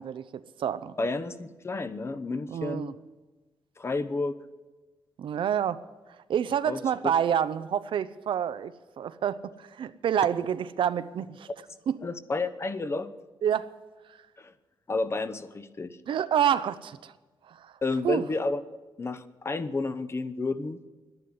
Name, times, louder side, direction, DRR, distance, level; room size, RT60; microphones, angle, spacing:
voice 1, 0.0-0.9 2.5-2.9 5.2-5.8 6.3-11.5 11.9-12.0 13.4-13.7 16.1-17.1 17.5-17.7 18.0-18.2, right 9 dB, 75° right, 14 dB, 0.6 m, -28 dB
voice 2, 1.0-2.9 3.8-4.4 6.7-6.8 12.0-13.1 14.4-14.5 14.9-16.0 17.8-18.6 19.0-20.8, left 3 dB, 30° left, 13 dB, 0.8 m, -31 dB
11.5 x 11.0 x 9.6 m, 1.2 s
cardioid pair, 110°, 9 cm